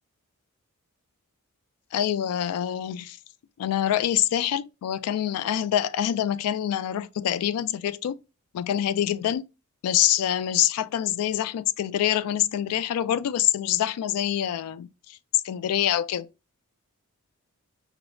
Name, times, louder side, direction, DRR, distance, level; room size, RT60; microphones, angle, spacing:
voice 1, 1.9-3.2 3.6-8.2 8.5-9.4 9.8-16.3, left 11 dB, 85° left, 0.3 m, -25 dB
4.8 x 2.0 x 2.6 m
head